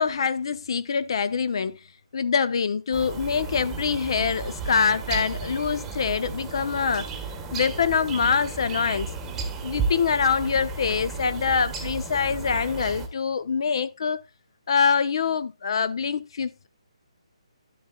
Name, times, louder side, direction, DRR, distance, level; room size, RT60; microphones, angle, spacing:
voice 1, 0.0-1.8 2.1-7.1 7.5-9.1 9.6-14.2 14.7-16.7, left 6 dB, 50° left, 0.6 m, -24 dB
sound 1, 2.9-13.1, right 4 dB, 10° right, 1.2 m, -33 dB
12.0 x 7.7 x 2.3 m
hypercardioid pair, 165°, 3 cm